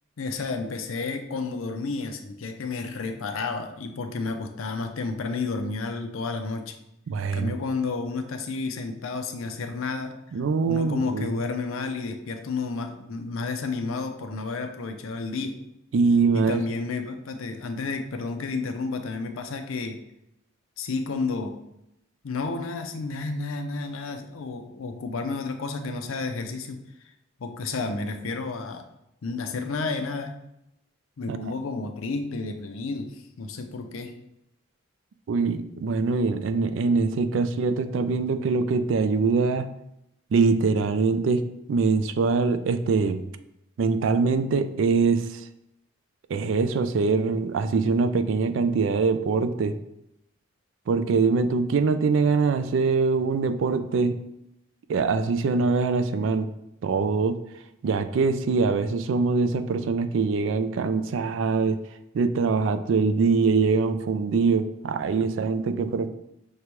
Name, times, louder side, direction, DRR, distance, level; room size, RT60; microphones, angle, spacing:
voice 1, 0.2-6.8 7.3-10.2 10.7-15.6 16.3-20.0 20.8-21.6 22.2-26.8 27.4-28.8 29.2-30.3 31.2-34.2, left 3 dB, 80° left, 6 dB, 0.5 m, -31 dB
voice 2, 7.1-7.5 10.3-11.3 15.9-16.6 31.3-31.4 35.3-39.7 40.3-41.4 41.7-43.2 43.8-45.4 46.3-49.7 50.9-54.2 54.9-56.5 56.8-57.4 57.8-61.8 62.1-66.1, right 4 dB, 70° right, 10 dB, 0.3 m, -23 dB
6.4 x 2.3 x 3.0 m, 0.83 s
head